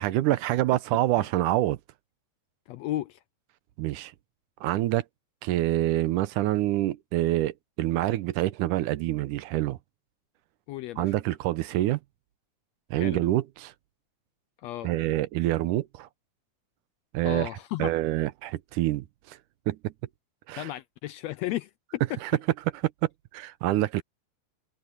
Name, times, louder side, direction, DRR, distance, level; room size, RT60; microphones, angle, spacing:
voice 1, 0.0-1.8 3.8-4.1 4.6-5.0 5.4-9.8 11.0-12.0 12.9-13.7 14.8-16.1 17.1-17.5 17.8-19.4 19.7-19.9 20.5-20.7 22.2-22.3 23.3-24.0, right 15 dB, 85° right, 2.3 m, -26 dB
voice 2, 2.7-3.2 10.7-11.1 12.9-13.2 14.6-14.9 17.2-17.9 20.6-22.2, left 14 dB, 80° left, 1.6 m, -34 dB
omnidirectional pair, 3.5 m